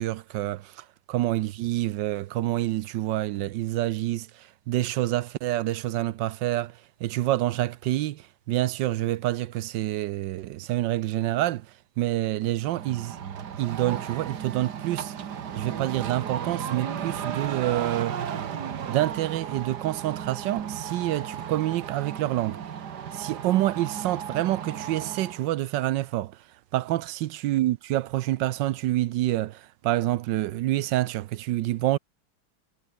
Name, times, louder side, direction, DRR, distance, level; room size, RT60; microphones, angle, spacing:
voice 1, 0.0-11.7 12.0-13.2 13.6-15.1 15.6-18.2 18.9-22.6 23.1-26.4 26.7-32.0, right 15 dB, 75° right, 1.2 m, -27 dB
sound 1, 12.7-25.5, right 8 dB, 60° right, 1.9 m, -35 dB
omnidirectional pair, 2.1 m